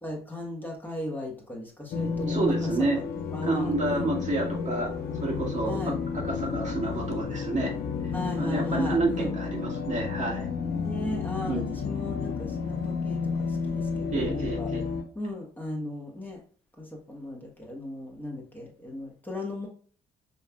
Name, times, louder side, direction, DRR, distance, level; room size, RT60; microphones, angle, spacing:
voice 1, 0.0-2.9 3.3-4.1 5.6-5.9 8.1-9.3 10.7-14.7 15.1-16.4 16.8-19.7, left 1 dB, 10° left, -1 dB, 1.5 m, -37 dB
sound 1, 1.9-15.0, left 5 dB, 70° left, 0.7 m, -31 dB
voice 2, 2.3-3.0 3.4-7.7 8.4-10.5 11.5-11.8 14.1-14.8, right 2 dB, 45° right, -2 dB, 1.7 m, -29 dB
5.5 x 3.1 x 2.3 m, 0.42 s
supercardioid pair, 60°, 17 cm